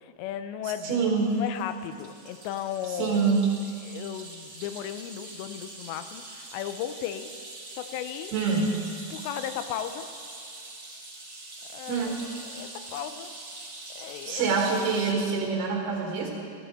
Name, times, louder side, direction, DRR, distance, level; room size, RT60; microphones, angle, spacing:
voice 1, 0.0-3.4 3.8-7.3 7.7-8.3 9.1-10.1 11.7-13.3 14.0-14.5, left 10 dB, 90° left, 10 dB, 2.9 m, -36 dB
voice 2, 0.8-1.3 3.0-3.5 8.3-8.8 11.9-12.1 14.3-16.3, right 5 dB, 70° right, -2 dB, 3.8 m, -25 dB
sound 1, 0.9-15.1, right 2 dB, 40° right, 1.4 m, -44 dB
16.0 x 14.0 x 3.5 m, 2.3 s
omnidirectional pair, 4.9 m